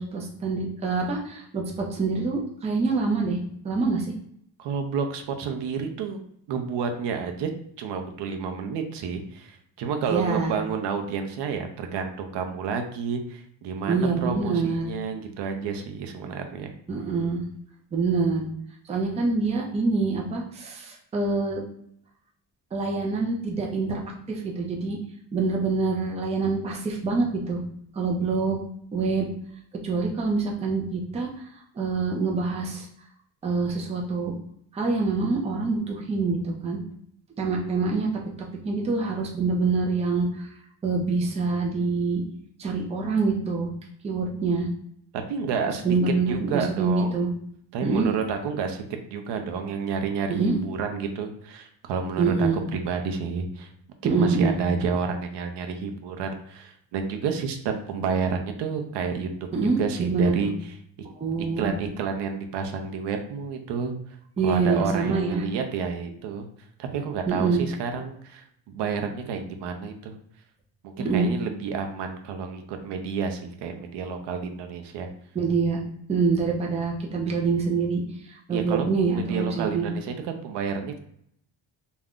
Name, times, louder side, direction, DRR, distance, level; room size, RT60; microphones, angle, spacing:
voice 1, 0.0-3.4 3.6-4.1 10.1-10.6 13.9-14.9 16.9-17.4 17.9-18.5 18.9-21.6 22.7-24.0 24.3-25.0 25.3-27.6 27.9-28.6 28.9-29.3 29.8-31.3 31.8-32.9 33.4-34.3 34.7-36.8 37.4-38.1 38.6-40.5 40.8-42.2 42.6-43.7 44.0-44.7 45.8-47.3 47.8-48.1 50.3-50.5 52.2-52.6 54.0-54.6 59.5-60.5 61.2-61.8 64.4-65.5 67.3-67.6 71.0-71.3 75.3-75.8 76.1-78.0 78.5-79.9, right 4 dB, 15° right, -1 dB, 0.4 m, -25 dB
voice 2, 4.6-6.2 6.5-7.5 7.8-16.7 45.1-46.0 46.3-47.2 47.7-48.8 49.1-53.7 54.0-59.3 59.6-60.8 61.6-64.0 64.4-70.1 70.8-75.1 78.5-81.0, right 6 dB, 70° right, 5 dB, 0.6 m, -30 dB
2.4 x 2.2 x 3.5 m, 0.68 s
cardioid pair, 140°, 43 cm